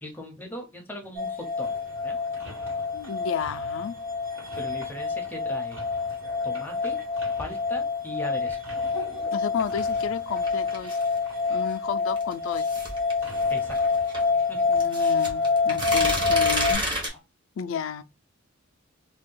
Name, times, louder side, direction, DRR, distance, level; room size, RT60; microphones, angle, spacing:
voice 1, 0.0-2.2 4.5-5.8 6.4-7.0 7.4-8.6 13.5-14.0 14.3-14.8, left 1 dB, 10° left, 0.6 m, -39 dB
sound 1, 1.2-16.7, left 4 dB, 45° right, 1.2 m, -27 dB
sound 2, 1.6-17.2, left 1 dB, 70° right, 1.8 m, -47 dB
voice 2, 2.9-4.0 9.3-11.0 11.5-12.7 14.7-16.8 17.6-18.0, left 7 dB, 75° left, 0.3 m, -32 dB
sound 3, 9.6-11.2 12.2-14.2 14.7-17.1, right 1 dB, 25° right, 1.0 m, -30 dB
2.7 x 2.3 x 3.7 m
head